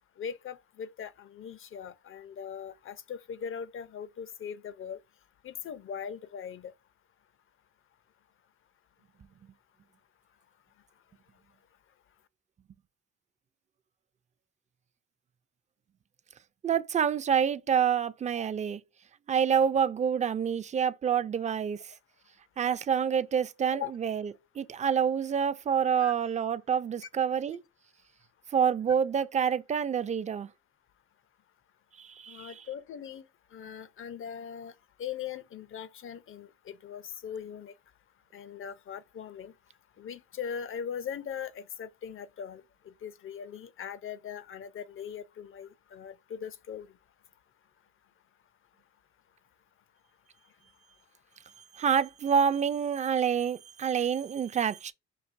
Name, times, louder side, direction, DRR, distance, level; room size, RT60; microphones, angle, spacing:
voice 1, 0.2-5.0 5.4-6.7 23.7-23.9 26.0-26.1 32.3-33.2 33.5-34.7 35.0-37.7 38.3-39.5 40.0-46.9, left 8 dB, 45° left, 0.5 m, -40 dB
voice 2, 16.6-18.8 19.3-21.9 22.6-24.3 24.6-27.6 28.5-30.5 32.0-32.5 51.7-54.9, right 7 dB, 25° right, 0.3 m, -27 dB
5.8 x 2.6 x 2.5 m
cardioid pair, 90°, 30 cm